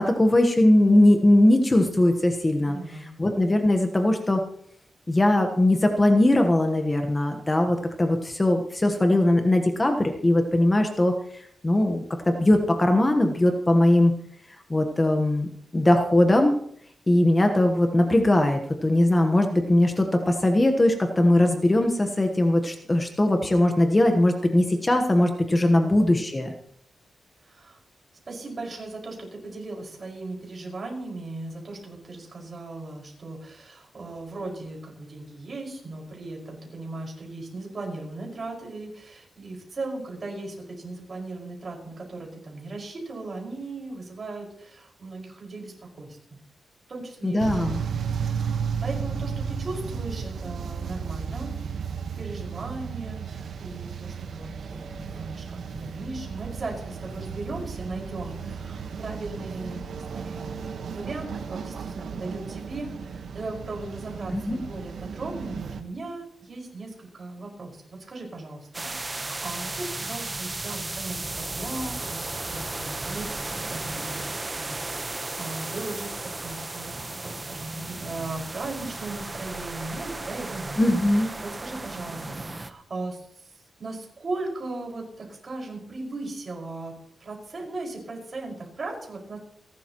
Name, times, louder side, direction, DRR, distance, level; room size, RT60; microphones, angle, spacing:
voice 1, 0.0-2.7 3.2-4.4 5.1-14.1 14.7-15.5 15.7-16.5 17.1-26.5 47.2-47.8 64.3-64.6 80.8-81.3, left 1 dB, 20° left, 4 dB, 1.2 m, -20 dB
voice 2, 2.6-3.1 25.7-26.0 27.4-27.8 28.3-46.4 46.9-51.8 52.2-60.6 60.9-74.2 74.6-76.9 77.2-80.8 81.1-83.5 83.8-86.9 87.2-89.4, right 2 dB, 40° right, 0 dB, 5.5 m, -37 dB
sound 1, 47.4-65.8, right 6 dB, 80° right, 1.3 m, -34 dB
sound 2, 68.7-82.7, right 2 dB, 20° right, 1.0 m, -35 dB
29.0 x 12.0 x 3.1 m, 0.66 s
wide cardioid pair, 145°, 0 cm